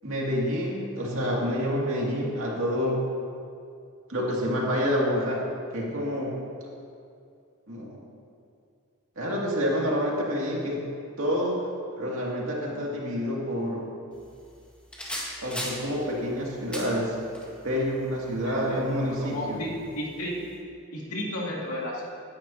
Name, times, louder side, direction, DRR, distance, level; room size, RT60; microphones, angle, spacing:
voice 1, 0.0-3.0 4.1-5.4 5.7-6.3 7.7-8.0 9.2-10.8 11.2-11.5 12.0-13.9 15.4-17.1 17.6-19.6, equal, 65° right, -4 dB, 2.3 m, -28 dB
sound 1, 14.1-20.6, equal, 5° left, 1.7 m, -41 dB
voice 2, 18.4-20.5 20.9-22.0, left 1 dB, 80° left, -4 dB, 2.3 m, -33 dB
16.0 x 10.5 x 2.8 m, 2.4 s
head